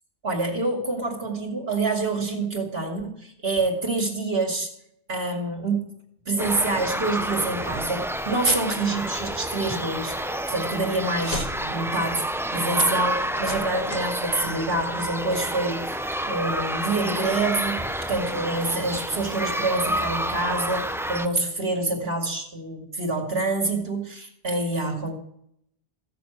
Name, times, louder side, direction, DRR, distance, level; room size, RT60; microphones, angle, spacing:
voice 1, 0.2-4.7 5.1-5.9 6.3-12.3 12.5-25.1, right 2 dB, 70° right, 2 dB, 2.6 m, -27 dB
sound 1, 6.4-21.3, right 1 dB, 5° right, 0.4 m, -29 dB
sound 2, 10.1-10.3 10.7-11.7 13.0-14.1 14.4-14.5, equal, 40° left, 2.8 m, -36 dB
15.5 x 6.9 x 7.9 m, 0.72 s
omnidirectional pair, 1.0 m